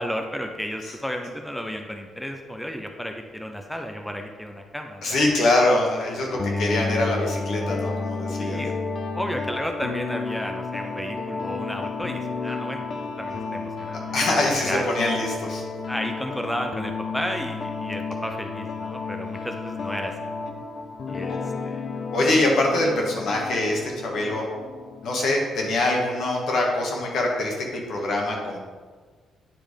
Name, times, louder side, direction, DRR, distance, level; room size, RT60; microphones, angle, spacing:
voice 1, 0.0-5.3 6.5-6.6 8.4-8.7 9.1-12.9 13.2-14.0 14.7-14.8 15.9-20.3 21.1-21.8, equal, 5° left, 4 dB, 0.6 m, -32 dB
voice 2, 5.0-8.6 14.1-15.6 22.1-24.5 25.0-28.6, left 2 dB, 70° left, -1 dB, 1.7 m, -24 dB
sound 1, 6.3-25.2, left 4 dB, 50° left, 0.5 m, -32 dB
9.1 x 3.4 x 5.1 m, 1.5 s
cardioid pair, 90°, 0 cm